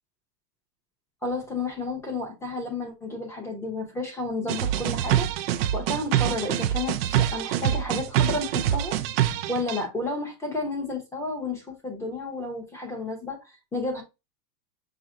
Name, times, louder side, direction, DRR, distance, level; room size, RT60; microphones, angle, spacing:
voice 1, 1.2-5.3 5.7-9.0 9.5-13.4 13.7-14.0, left 2 dB, 5° left, 0.8 m, -31 dB
sound 1, 4.5-9.8, right 11 dB, 40° right, 0.4 m, -25 dB
5.9 x 2.1 x 3.7 m
supercardioid pair, 165°, 48 cm